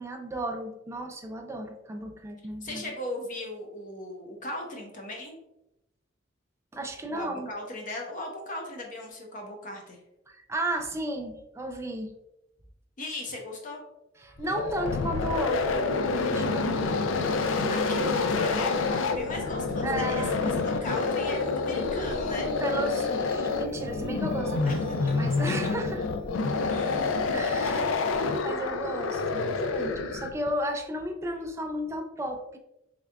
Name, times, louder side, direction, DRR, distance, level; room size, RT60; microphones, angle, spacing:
voice 1, 0.0-2.9 6.7-7.5 10.3-12.1 14.2-16.8 19.8-20.6 22.3-26.0 27.3-27.8 28.4-32.6, right 1 dB, 15° right, 4 dB, 0.3 m, -34 dB
voice 2, 2.6-5.4 7.1-10.0 13.0-13.8 17.4-22.5 24.6-24.8 25.1-25.2 26.7-27.8, left 1 dB, 45° left, 1 dB, 0.8 m, -37 dB
sound 1, 14.4-30.5, left 4 dB, 85° left, 0.3 m, -28 dB
sound 2, 19.5-27.3, left 1 dB, 10° left, 0.9 m, -42 dB
3.6 x 3.3 x 2.2 m, 0.87 s
head